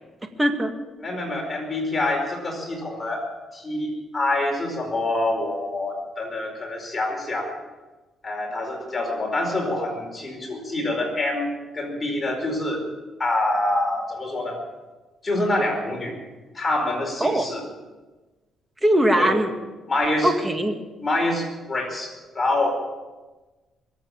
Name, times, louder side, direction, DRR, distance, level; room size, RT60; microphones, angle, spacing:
voice 1, 0.4-0.7 17.2-17.5 18.8-19.5 20.2-20.7, right 1 dB, 15° right, 6 dB, 2.0 m, -20 dB
voice 2, 1.0-3.2 3.5-7.5 8.2-12.8 13.2-14.6 15.2-16.2 16.5-17.6 19.1-19.4 19.9-20.3 21.0-22.7, left 2 dB, 25° left, 0 dB, 4.8 m, -26 dB
22.5 x 8.3 x 7.1 m, 1.2 s
cardioid pair, 85°, 0 cm